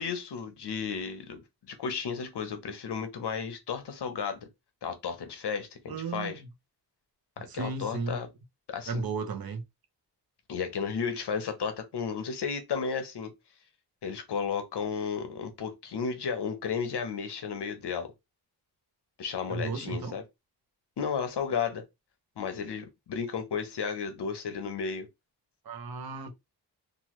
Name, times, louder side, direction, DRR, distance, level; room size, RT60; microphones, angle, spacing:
voice 1, 0.0-1.4 1.7-4.4 4.8-6.4 7.4-8.3 8.7-9.0 10.5-13.3 14.0-18.1 19.2-20.2 21.0-21.8 22.4-25.1, left 6 dB, 70° left, 0.8 m, -33 dB
voice 2, 5.9-6.4 7.5-8.2 8.9-9.6 19.5-20.2 25.7-26.3, right 4 dB, 60° right, 0.7 m, -34 dB
3.0 x 2.4 x 2.9 m
wide cardioid pair, 175°, 41 cm